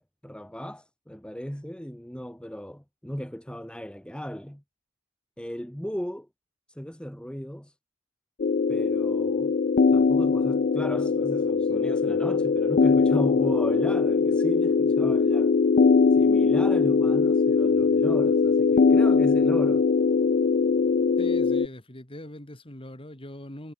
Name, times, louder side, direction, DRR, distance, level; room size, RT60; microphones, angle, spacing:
voice 1, 0.0-4.6 5.4-6.3 6.7-7.7 8.7-9.5 9.9-15.5 16.1-19.9, equal, 5° left, 1.4 m, -36 dB
sound 1, 8.4-21.7, left 4 dB, 45° left, 0.4 m, -21 dB
voice 2, 21.2-23.7, left 1 dB, 25° left, 3.5 m, -42 dB
head